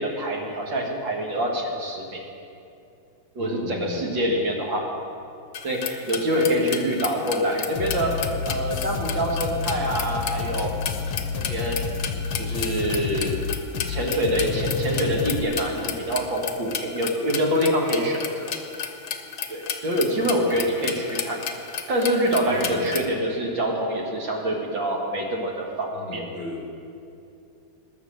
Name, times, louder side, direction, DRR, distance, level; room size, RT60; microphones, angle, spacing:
voice 1, 0.0-2.2 3.4-4.9 5.6-10.7 11.3-11.8 12.4-13.4 13.9-18.5 19.5-21.4 21.9-26.2, equal, 60° right, 0 dB, 2.5 m, -25 dB
voice 2, 3.4-4.2 6.4-6.7 20.2-20.6 22.5-23.0 25.9-26.7, left 2 dB, 35° left, 0 dB, 1.1 m, -37 dB
sound 1, 5.5-23.1, left 7 dB, 60° left, 1.3 m, -33 dB
sound 2, 7.8-15.4, left 6 dB, 80° left, 1.6 m, -30 dB
20.0 x 7.0 x 6.6 m, 2.7 s
omnidirectional pair, 2.3 m